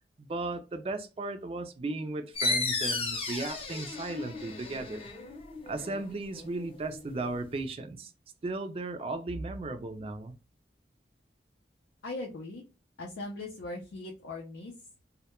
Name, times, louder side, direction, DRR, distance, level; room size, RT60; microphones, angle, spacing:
voice 1, 0.2-5.1 5.7-8.1 8.4-10.3, right 2 dB, 30° right, 0.3 m, -36 dB
sound 1, 2.4-7.6, left 3 dB, 30° left, 0.5 m, -35 dB
voice 2, 12.0-12.6 13.0-14.7, left 2 dB, 85° left, 0.5 m, -39 dB
2.2 x 2.1 x 2.9 m
head